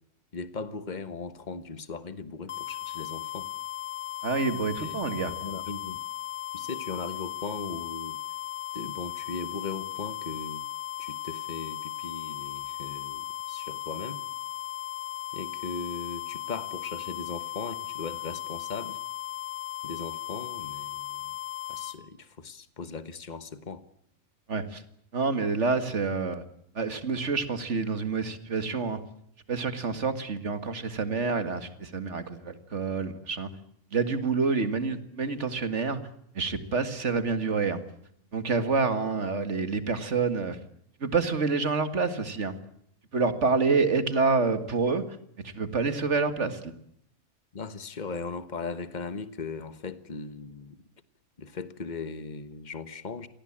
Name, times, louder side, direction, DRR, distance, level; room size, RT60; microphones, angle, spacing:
voice 1, 0.3-3.5 4.8-5.0 5.4-6.0 6.5-8.2 8.7-10.7 11.0-14.2 15.3-19.0 19.8-21.4 21.7-23.8 47.5-50.8 51.4-53.3, left 4 dB, 30° left, 13 dB, 1.4 m, -38 dB
sound 1, 2.5-22.0, left 14 dB, 85° left, 2.2 m, -37 dB
voice 2, 4.2-5.3 24.5-24.8 25.1-26.4 26.7-29.0 29.5-33.5 33.9-36.0 36.3-37.8 38.3-40.6 41.0-42.6 43.1-45.0 45.4-46.7, right 4 dB, 55° right, 10 dB, 2.2 m, -27 dB
27.0 x 18.0 x 8.8 m, 0.73 s
omnidirectional pair, 1.5 m